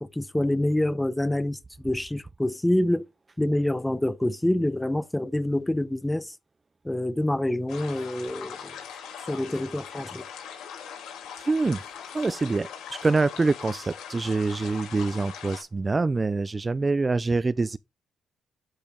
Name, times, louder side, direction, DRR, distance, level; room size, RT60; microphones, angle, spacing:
voice 1, 0.0-3.1 3.4-6.3 6.8-8.8 9.2-10.2, left 1 dB, 10° left, 0.8 m, -26 dB
sound 1, 7.7-15.6, left 8 dB, 85° left, 4.6 m, -41 dB
voice 2, 11.4-11.8 12.1-17.8, right 3 dB, 25° right, 0.4 m, -25 dB
12.0 x 4.9 x 3.8 m
cardioid pair, 90°, 0 cm